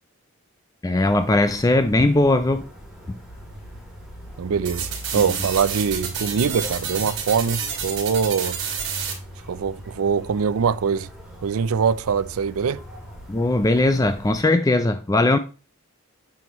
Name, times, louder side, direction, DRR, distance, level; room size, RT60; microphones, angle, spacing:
voice 1, 0.8-2.6 3.1-3.2 13.3-15.4, left 2 dB, 15° left, 0.4 m, -19 dB
sound 1, 0.9-14.4, equal, ahead, 3.1 m, -41 dB
voice 2, 4.4-8.6 9.5-11.1 11.4-12.8, right 6 dB, 75° right, 0.4 m, -23 dB
sound 2, 4.6-9.1, right 6 dB, 55° right, 3.3 m, -30 dB
9.3 x 7.0 x 3.0 m
head